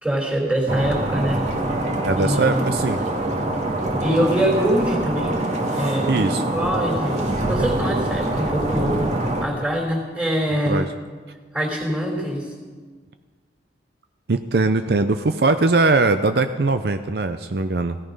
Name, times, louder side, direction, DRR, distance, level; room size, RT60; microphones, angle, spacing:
voice 1, 0.0-1.4 2.2-2.6 4.0-5.4 5.7-6.2 6.5-9.1 9.4-10.9 11.5-12.5, right 1 dB, 5° right, 0 dB, 3.4 m, -24 dB
sound 1, 0.7-9.5, right 1 dB, 40° right, 2.0 m, -24 dB
voice 2, 2.0-3.0 6.1-6.4 10.7-10.9 14.3-18.0, right 3 dB, 60° right, 9 dB, 0.6 m, -20 dB
16.5 x 14.5 x 5.4 m, 1.5 s
head